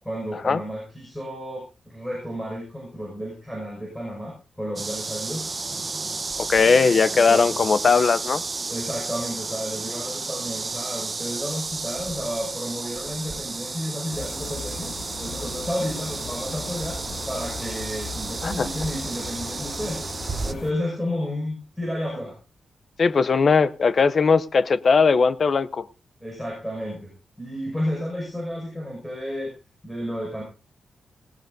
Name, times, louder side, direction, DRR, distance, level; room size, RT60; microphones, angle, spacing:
voice 1, 0.0-5.5 7.1-8.0 8.7-14.9 15.2-17.0 17.3-20.0 20.4-22.4 26.2-27.1 27.4-29.5 29.8-30.4, equal, 5° left, 5.8 m, -32 dB
sound 1, 4.8-20.5, right 3 dB, 30° right, 0.9 m, -32 dB
voice 2, 6.4-8.4 18.4-18.7 23.0-25.8, left 5 dB, 45° left, 0.6 m, -19 dB
sound 2, 14.1-20.7, left 4 dB, 80° left, 1.7 m, -38 dB
18.5 x 18.0 x 2.7 m
wide cardioid pair, 150°, 0 cm